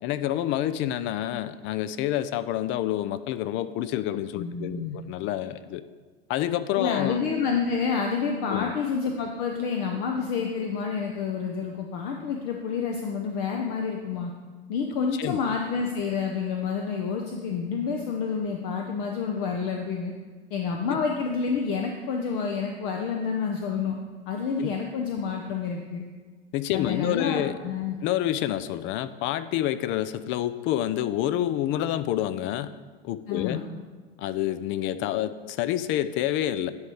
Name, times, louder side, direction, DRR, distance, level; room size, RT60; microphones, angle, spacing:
voice 1, 0.0-5.8 6.3-7.2 8.5-8.7 15.2-15.4 20.9-21.0 24.6-24.7 26.5-27.6 28.0-32.7 33.0-33.6 34.2-36.7, left 12 dB, 40° left, 14 dB, 0.4 m, -28 dB
voice 2, 4.4-5.0 6.8-14.3 14.7-20.1 20.5-24.0 24.3-26.0 26.7-28.0 33.3-33.6, left 5 dB, 60° left, 2 dB, 0.8 m, -29 dB
9.5 x 3.2 x 4.9 m, 1.5 s
hypercardioid pair, 95°, 30 cm